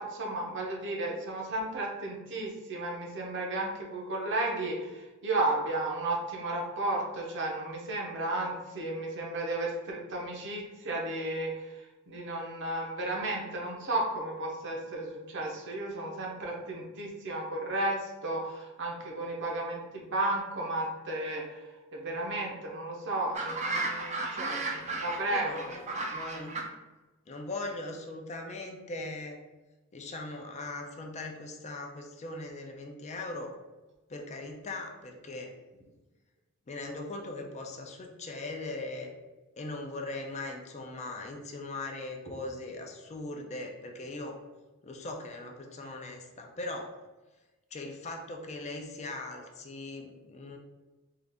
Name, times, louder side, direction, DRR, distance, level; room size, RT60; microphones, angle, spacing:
voice 1, 0.0-25.7, right 2 dB, 55° right, -1 dB, 0.8 m, -33 dB
sound 1, 23.3-26.7, right 3 dB, 30° right, 0.4 m, -34 dB
voice 2, 25.2-26.6 27.3-29.4 29.9-33.5 34.1-35.5 36.7-39.1 39.6-44.4 44.8-46.9 47.7-50.6, left 2 dB, 30° left, 2 dB, 0.4 m, -40 dB
3.8 x 2.4 x 3.4 m, 1.1 s
head